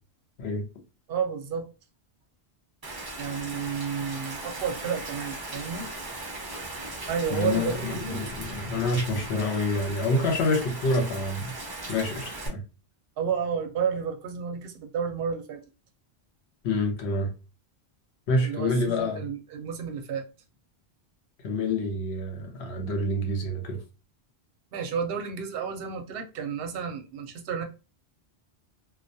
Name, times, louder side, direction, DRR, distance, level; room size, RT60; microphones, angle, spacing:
voice 1, 1.1-1.7 3.2-5.9 7.1-8.3 13.2-15.6 18.4-20.3 24.7-27.6, right 6 dB, 70° right, 0.7 m, -31 dB
Rain, 2.8-12.5, right 2 dB, 30° right, 0.4 m, -38 dB
voice 2, 7.3-11.5 11.9-12.6 16.6-17.3 18.3-19.2 21.4-23.8, left 2 dB, 80° left, 0.9 m, -27 dB
2.2 x 2.2 x 2.6 m
omnidirectional pair, 1.1 m